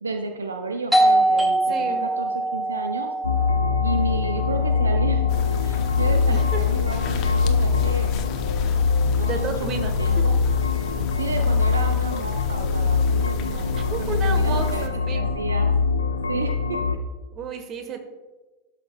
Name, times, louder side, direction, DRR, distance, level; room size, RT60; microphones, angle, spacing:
voice 1, 0.0-3.1 3.8-5.3 5.6-8.1 9.1-10.4 11.2-13.7 14.0-14.9 15.1-15.7 16.3-16.8, right 3 dB, 80° right, 6 dB, 0.5 m, -31 dB
Doorbell, 0.9-6.3, right 1 dB, 5° right, 1.2 m, -24 dB
voice 2, 1.7-2.1 6.3-6.6 9.3-10.0 13.8-15.3 17.3-18.1, right 5 dB, 35° right, 7 dB, 1.1 m, -31 dB
sound 1, 3.2-17.0, left 5 dB, 80° left, 0.5 m, -23 dB
sound 2, 5.3-14.9, left 6 dB, 45° left, 0.8 m, -34 dB
12.0 x 5.9 x 2.3 m, 1.2 s
figure-of-eight pair, 85°, 0 cm